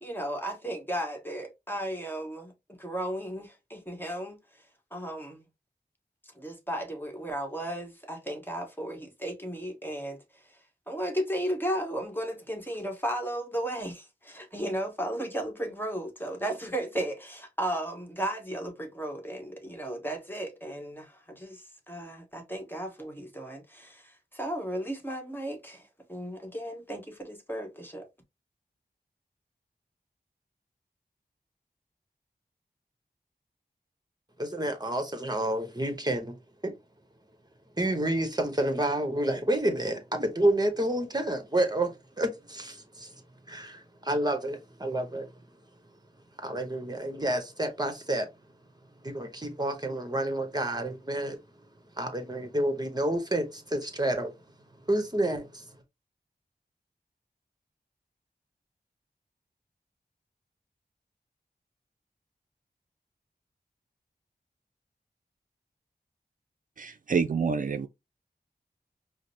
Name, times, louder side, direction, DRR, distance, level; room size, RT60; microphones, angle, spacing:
voice 1, 0.0-2.5 2.8-4.4 4.9-5.4 6.3-10.4 10.9-28.1, right 1 dB, 10° left, 1.2 m, -35 dB
voice 2, 34.4-36.4 36.6-36.8 37.8-45.4 46.4-48.3 49.0-51.4 51.9-54.3 54.7-55.8, right 1 dB, 25° right, 1.0 m, -29 dB
voice 3, 66.8-67.9, right 5 dB, 55° right, 0.4 m, -27 dB
5.0 x 2.0 x 2.7 m
cardioid pair, 45°, 17 cm